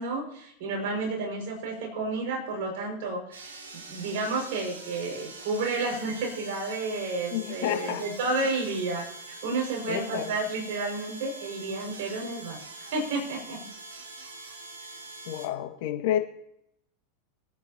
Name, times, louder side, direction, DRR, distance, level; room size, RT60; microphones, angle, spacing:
voice 1, 0.0-13.6, right 3 dB, 60° right, 1 dB, 5.9 m, -31 dB
sound 1, 3.3-15.5, right 3 dB, 80° right, 2.2 m, -44 dB
voice 2, 7.3-8.4 9.9-10.3 15.2-16.2, left 12 dB, 60° left, 5 dB, 2.0 m, -30 dB
25.5 x 9.8 x 3.0 m, 0.76 s
hypercardioid pair, 90°, 0 cm